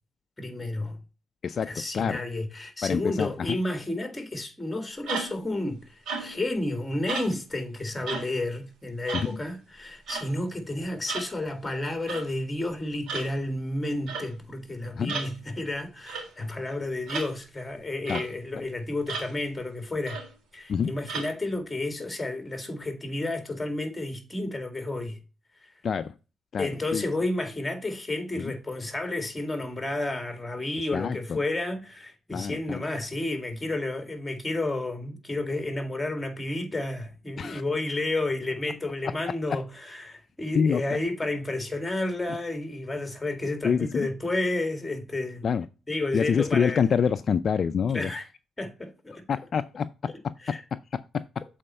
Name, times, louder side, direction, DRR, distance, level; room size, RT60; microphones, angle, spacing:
voice 1, 0.4-1.0 1.7-20.2 20.5-25.2 26.6-45.4 45.9-46.9 47.9-48.2 48.6-49.2 50.1-50.6, left 2 dB, 15° left, 2.0 m, -31 dB
voice 2, 1.4-2.2 2.8-3.3 9.1-9.4 15.0-15.2 18.1-18.2 20.7-20.9 25.8-26.1 26.5-27.0 28.4-28.5 30.9-31.2 32.3-32.8 37.4-37.6 39.5-39.6 40.5-40.8 43.6-44.1 45.4-45.7 46.1-48.1 49.3-51.4, left 6 dB, 55° left, 0.4 m, -27 dB
sound 1, 5.1-5.5 6.1-6.5 7.1-7.4 8.1-8.3 9.1-9.3 10.1-10.3 11.1-11.3 12.1-12.3 13.1-13.3 14.1-14.3 15.1-15.3 16.1-16.3 17.1-17.3 18.1-18.3 19.1-19.3 20.1-20.3 21.1-21.3, right 4 dB, 75° right, 2.8 m, -34 dB
7.5 x 4.3 x 4.2 m
cardioid pair, 85°, 0 cm